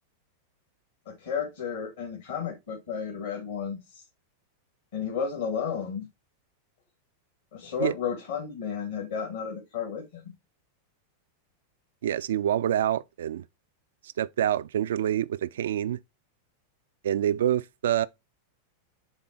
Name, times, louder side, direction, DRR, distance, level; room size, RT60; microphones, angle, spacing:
voice 1, 1.0-4.0 4.9-6.0 7.5-10.2, left 7 dB, 60° left, 1.7 m, -32 dB
voice 2, 12.0-13.4 14.2-16.0 17.0-18.1, right 11 dB, 60° right, 0.3 m, -26 dB
7.1 x 3.8 x 4.3 m
figure-of-eight pair, 90°, 0 cm